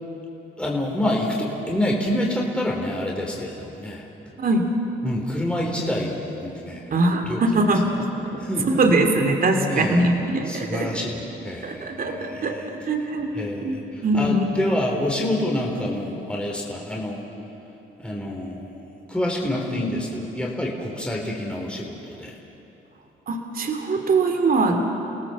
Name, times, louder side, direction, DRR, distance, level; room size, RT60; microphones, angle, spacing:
voice 1, 0.6-4.1 5.0-6.9 7.3-7.4 8.4-8.8 9.7-10.1 10.5-12.7 13.4-17.3 18.0-18.8 19.1-22.3, left 1 dB, 5° left, -2 dB, 4.0 m, -27 dB
voice 2, 4.4-4.7 6.9-10.9 11.6-14.5 23.3-24.8, right 2 dB, 45° right, 4 dB, 2.9 m, -22 dB
30.0 x 17.5 x 7.4 m, 3.0 s
cardioid pair, 90°, 20 cm